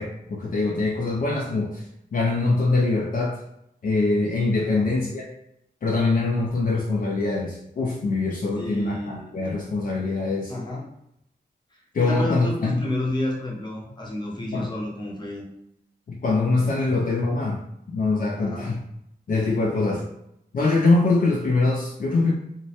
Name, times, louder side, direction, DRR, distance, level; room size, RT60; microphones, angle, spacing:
voice 1, 0.0-1.9 2.1-3.4 3.8-5.3 5.8-10.5 11.9-12.8 14.5-14.7 16.1-18.8 19.3-20.0 20.5-22.3, left 3 dB, 55° left, -3 dB, 0.4 m, -23 dB
voice 2, 4.6-4.9 8.5-9.3 10.5-10.9 11.7-15.5 16.8-16.9 18.4-18.8 19.5-20.0, left 1 dB, 25° left, -3 dB, 0.7 m, -31 dB
2.1 x 2.0 x 2.8 m, 0.79 s
cardioid pair, 50°, 17 cm